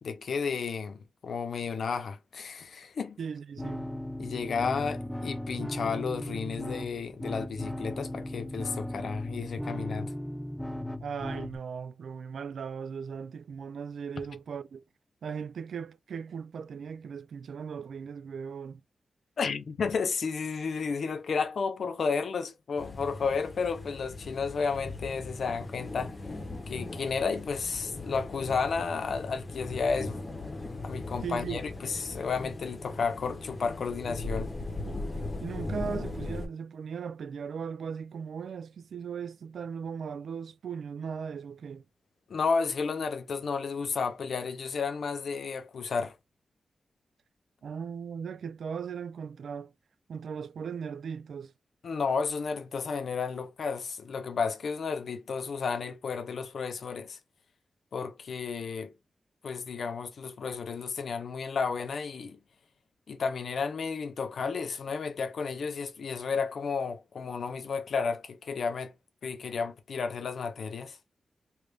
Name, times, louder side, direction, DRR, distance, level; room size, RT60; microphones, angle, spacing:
voice 1, 0.0-3.2 4.2-10.1 19.4-26.2 26.7-30.2 30.8-34.5 42.3-46.2 51.8-57.2 57.9-58.9 59.4-62.4 63.1-68.9 69.2-71.0, left 5 dB, 65° left, 0.6 m, -32 dB
voice 2, 3.2-3.9 11.0-14.8 15.2-18.8 31.2-31.6 35.4-41.8 47.6-49.7 50.1-51.5, right 6 dB, 80° right, 0.3 m, -38 dB
sound 1, 3.6-11.6, left 1 dB, 5° left, 0.3 m, -37 dB
Rain & Thunder, 22.8-36.5, left 2 dB, 30° left, 0.8 m, -39 dB
3.3 x 2.5 x 3.2 m
wide cardioid pair, 140°, 0 cm